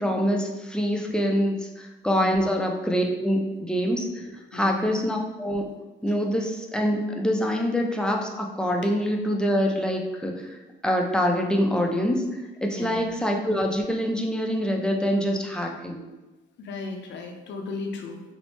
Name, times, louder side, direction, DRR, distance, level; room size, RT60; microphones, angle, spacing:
voice 1, 0.0-4.1 4.5-5.6 6.0-10.5 10.8-16.0, equal, 5° left, 1 dB, 0.4 m, -25 dB
voice 2, 2.1-2.5 4.5-4.9 6.1-6.2 12.7-13.1 16.6-18.2, left 3 dB, 65° left, 3 dB, 0.5 m, -35 dB
3.0 x 2.0 x 3.0 m, 1.1 s
cardioid pair, 90°, 20 cm